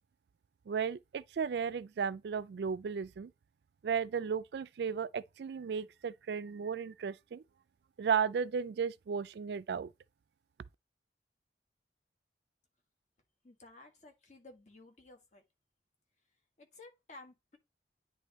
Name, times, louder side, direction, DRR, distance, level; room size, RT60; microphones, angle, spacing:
voice 1, 0.7-3.3 3.8-7.4 8.0-9.9, right 6 dB, 70° right, 0.3 m, -34 dB
voice 2, 13.4-15.4 16.6-17.6, left 2 dB, 40° left, 1.7 m, -55 dB
9.9 x 3.4 x 3.0 m
head